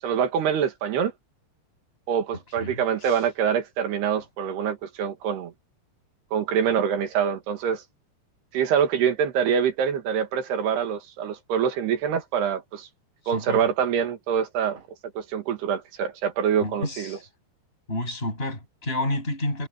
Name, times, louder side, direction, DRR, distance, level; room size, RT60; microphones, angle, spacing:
voice 1, 0.0-1.1 2.1-5.5 6.3-7.8 8.5-12.9 13.3-14.8 15.2-17.2, right 8 dB, 80° right, 4.1 m, -25 dB
voice 2, 2.6-3.2 13.2-13.7 16.6-17.2 17.9-19.7, left 1 dB, 15° left, 7.8 m, -30 dB
omnidirectional pair, 4.6 m